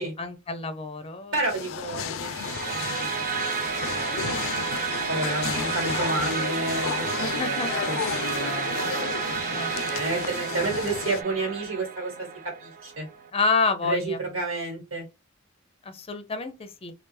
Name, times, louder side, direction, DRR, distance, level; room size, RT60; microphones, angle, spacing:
voice 1, 0.0-1.4 7.1-7.9 9.5-9.7 10.1-10.7 13.3-14.2 15.8-16.9, left 4 dB, 30° left, 0.5 m, -29 dB
voice 2, 1.3-2.3 2.7-12.1 12.4-13.1 13.8-15.0, right 2 dB, 75° right, 1.6 m, -31 dB
sound 1, 1.5-11.2, left 7 dB, 85° left, 0.4 m, -33 dB
sound 2, 2.3-13.3, right 6 dB, 45° right, 0.5 m, -31 dB
3.4 x 2.4 x 3.2 m
head